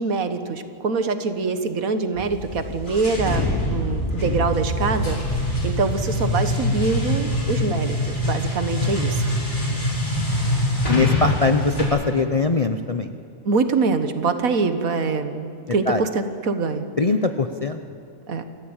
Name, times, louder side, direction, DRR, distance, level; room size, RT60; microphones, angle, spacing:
voice 1, 0.0-5.2 5.6-9.3 13.5-16.9 18.3-18.4, right 4 dB, 75° right, 9 dB, 1.8 m, -24 dB
sound 1, 2.2-11.8, left 1 dB, 65° left, 5.5 m, -24 dB
voice 2, 9.5-9.8 10.9-13.1 15.9-16.0 17.0-17.8, left 3 dB, 35° left, 7 dB, 0.6 m, -22 dB
27.5 x 14.0 x 8.9 m, 2.3 s
omnidirectional pair, 1.5 m